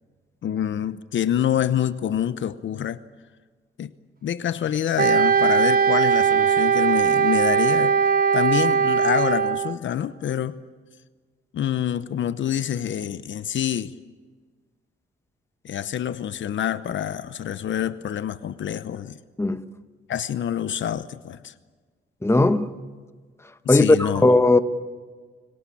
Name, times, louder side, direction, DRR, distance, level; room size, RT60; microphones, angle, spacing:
voice 1, 0.4-3.0 3.8-3.9 4.2-7.9 8.3-10.6 11.5-13.9 15.6-19.2 20.1-21.5 23.6-24.3, left 10 dB, 70° left, 0.9 m, -26 dB
Wind instrument woodwind instrument, 5.0-9.8, right 6 dB, 45° right, 1.3 m, -19 dB
voice 2, 22.2-22.7 23.7-24.6, left 2 dB, 15° left, 1.3 m, -17 dB
29.0 x 18.5 x 8.6 m
cardioid pair, 75°, 20 cm